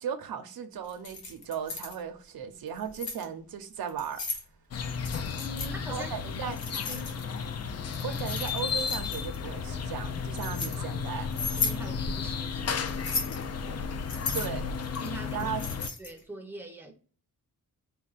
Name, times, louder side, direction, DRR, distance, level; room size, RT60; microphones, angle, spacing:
voice 1, 0.0-4.2 5.9-6.6 8.0-11.3 14.3-14.6 15.3-15.7, right 7 dB, 85° right, 0.7 m, -36 dB
Keys jangling, 0.9-2.0 2.7-3.2 3.9-4.4 5.0-5.7 6.6-7.4 7.9-9.4 10.0-10.7 11.3-11.8 12.9-13.4 14.1-16.2, left 4 dB, 85° left, 1.3 m, -35 dB
sound 1, 4.7-15.9, left 6 dB, 45° left, 0.4 m, -33 dB
voice 2, 5.4-7.1 11.6-13.3 13.6-13.9 15.0-15.5 16.0-16.9, right 1 dB, 5° right, 0.6 m, -44 dB
4.4 x 2.2 x 3.9 m
wide cardioid pair, 180°, 35 cm